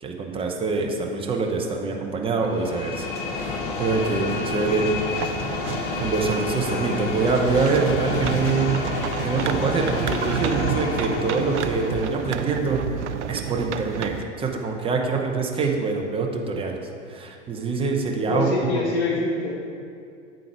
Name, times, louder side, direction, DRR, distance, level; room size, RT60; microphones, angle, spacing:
voice 1, 0.0-3.1 3.3-4.9 6.0-8.8 9.2-12.8 13.3-16.8 17.1-18.5 18.7-18.8, right 4 dB, 15° right, 1 dB, 0.7 m, -25 dB
sound 1, 2.5-12.3, left 4 dB, 35° left, 0.9 m, -30 dB
sound 2, 5.2-14.2, right 8 dB, 75° right, 0.5 m, -30 dB
voice 2, 11.2-11.6 18.2-19.7, left 3 dB, 55° left, -2 dB, 1.2 m, -26 dB
8.8 x 3.9 x 4.5 m, 2.3 s
figure-of-eight pair, 95°, 36 cm